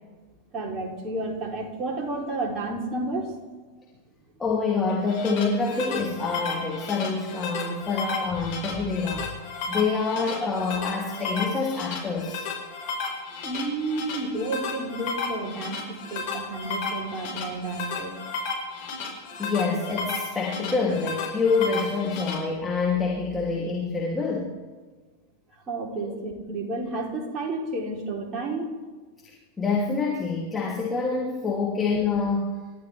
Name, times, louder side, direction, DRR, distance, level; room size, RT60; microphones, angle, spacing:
voice 1, 0.5-3.3 13.4-18.1 25.7-28.8, right 2 dB, 25° right, -1 dB, 3.8 m, -31 dB
voice 2, 4.4-9.3 9.7-12.5 19.4-24.5 26.0-26.2 29.6-32.6, left 4 dB, 15° left, -3 dB, 3.1 m, -26 dB
sound 1, 4.9-22.3, left 4 dB, 50° left, 5.4 m, -33 dB
28.5 x 13.5 x 3.6 m, 1.4 s
figure-of-eight pair, 90°, 0 cm